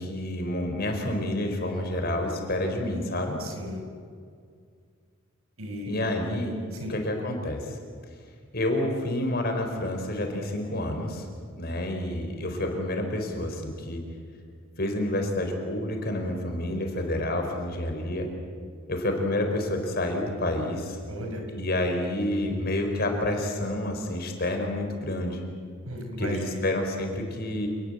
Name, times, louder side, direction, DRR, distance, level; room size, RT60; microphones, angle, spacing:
voice 1, 0.0-3.4 5.8-6.6 6.9-7.8 8.5-11.3 11.6-14.0 14.8-18.3 18.9-21.0 21.5-25.4 26.2-27.7, left 1 dB, 45° left, 3 dB, 4.5 m, -29 dB
voice 2, 3.4-3.8 5.6-6.1 6.8-6.9 21.1-21.4 25.9-26.6, equal, 85° right, 3 dB, 5.6 m, -35 dB
28.5 x 20.0 x 8.0 m, 2.1 s
head